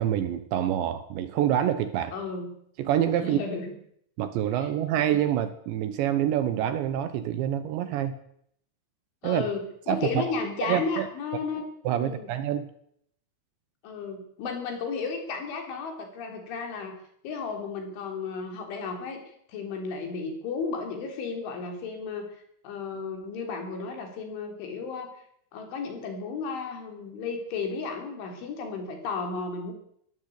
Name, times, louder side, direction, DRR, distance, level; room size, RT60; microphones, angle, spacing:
voice 1, 0.0-2.1 2.8-3.4 4.2-8.2 9.2-9.5 9.9-10.2 10.6-11.1 11.8-12.7, right 11 dB, 70° right, 12 dB, 3.2 m, -26 dB
voice 2, 2.1-2.5 3.2-3.7 4.6-4.7 9.2-9.6 9.9-11.6 11.9-12.3 13.8-17.0 17.2-25.1 25.5-29.7, left 4 dB, 70° left, 4 dB, 6.0 m, -33 dB
22.0 x 15.0 x 8.4 m, 0.70 s
omnidirectional pair, 5.9 m